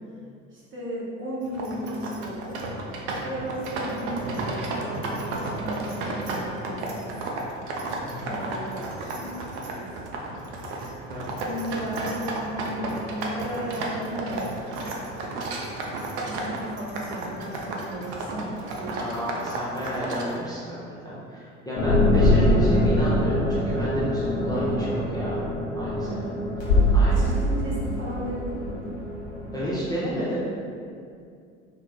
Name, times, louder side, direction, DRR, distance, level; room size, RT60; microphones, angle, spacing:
voice 1, 0.5-2.6 3.2-7.2 8.2-9.4 9.7-9.9 10.3-10.5 11.4-15.1 16.1-19.1 24.5-24.8 26.0-26.5 26.8-28.9, equal, 35° right, -6 dB, 0.9 m, -35 dB
sound 1, 1.4-20.3, right 2 dB, 70° right, 0.5 m, -33 dB
voice 2, 19.0-20.7 21.0-25.4 25.7-26.1 26.9-27.3 29.5-30.4, equal, 10° left, -9 dB, 0.5 m, -31 dB
sound 2, 21.8-29.7, left 1 dB, 45° left, 0.8 m, -23 dB
2.3 x 2.0 x 3.4 m, 2.3 s
hypercardioid pair, 65°, 36 cm